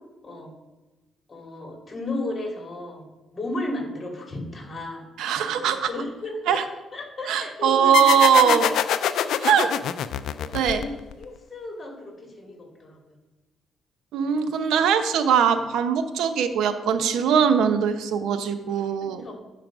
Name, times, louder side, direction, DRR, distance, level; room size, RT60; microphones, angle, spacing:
voice 1, 1.3-3.1 3.3-6.6 6.9-8.0 9.2-9.8 10.4-10.9 11.2-13.2 14.2-14.5 19.0-19.3, left 2 dB, 30° left, 1 dB, 2.8 m, -35 dB
voice 2, 5.2-5.9 6.5-6.6 7.3-8.8 9.4-9.7 10.5-10.8 14.1-19.3, right 7 dB, 85° right, 8 dB, 0.8 m, -21 dB
sound 1, 7.9-11.2, left 9 dB, 75° left, 0.4 m, -24 dB
10.0 x 5.0 x 6.1 m, 1.1 s
cardioid pair, 90°, 0 cm